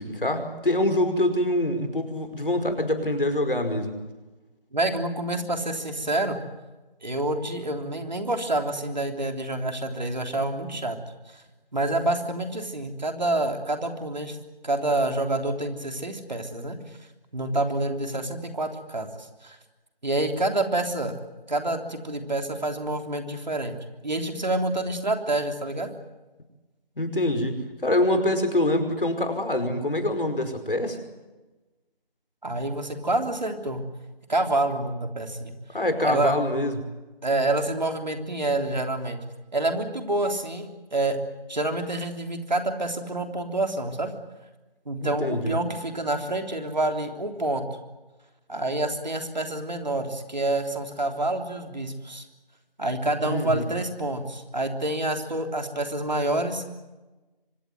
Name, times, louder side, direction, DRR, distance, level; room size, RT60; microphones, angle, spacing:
voice 1, 0.0-3.9 27.0-31.0 35.7-36.7 45.0-45.6 53.2-53.7, left 1 dB, 65° left, 7 dB, 5.2 m, -25 dB
voice 2, 4.7-6.4 7.0-11.0 11.3-11.4 11.7-14.4 14.6-16.8 17.3-19.6 20.0-21.2 21.5-23.8 24.0-25.9 32.4-33.8 34.3-35.5 36.0-36.3 37.2-39.2 39.5-41.2 41.5-44.1 44.9-47.7 48.5-52.2 52.8-56.7, right 2 dB, 50° right, 6 dB, 3.4 m, -27 dB
25.0 x 19.5 x 9.3 m, 1.1 s
figure-of-eight pair, 180°, 29 cm